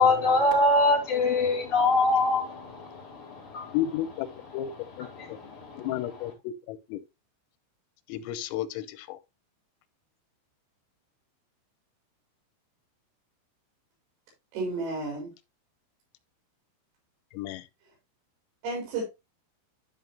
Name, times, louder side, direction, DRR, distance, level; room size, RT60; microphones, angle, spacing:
voice 1, 0.0-3.8 4.5-4.6 5.0-6.2, left 2 dB, 30° left, 3.3 m, -25 dB
voice 2, 3.7-4.3 4.5-4.7 5.0-5.1 5.8-6.3 6.9-7.0 8.1-8.8 17.4-17.6, left 12 dB, 90° left, 3.4 m, -31 dB
voice 3, 14.5-15.3 18.6-19.0, right 3 dB, 80° right, 6.5 m, -32 dB
12.5 x 5.6 x 2.7 m
omnidirectional pair, 5.9 m